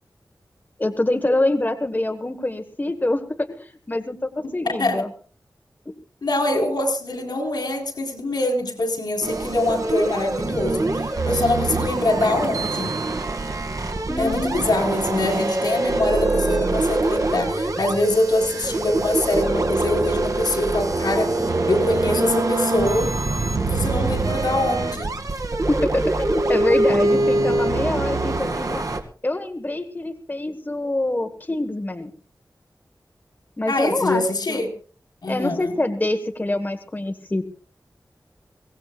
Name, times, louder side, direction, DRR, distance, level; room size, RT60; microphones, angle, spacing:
voice 1, 0.8-5.1 14.1-14.7 25.7-28.8 29.2-32.1 33.6-34.2 34.5-34.6 35.3-37.4, left 2 dB, 25° left, 6 dB, 1.5 m, -25 dB
voice 2, 6.2-12.9 14.2-23.1 23.6-25.1 33.7-34.7 35.2-35.7, left 2 dB, 80° left, 4 dB, 4.3 m, -24 dB
sound 1, 9.2-29.0, right 2 dB, 55° right, 2.4 m, -24 dB
23.5 x 18.0 x 2.5 m, 0.42 s
wide cardioid pair, 85°, 7 cm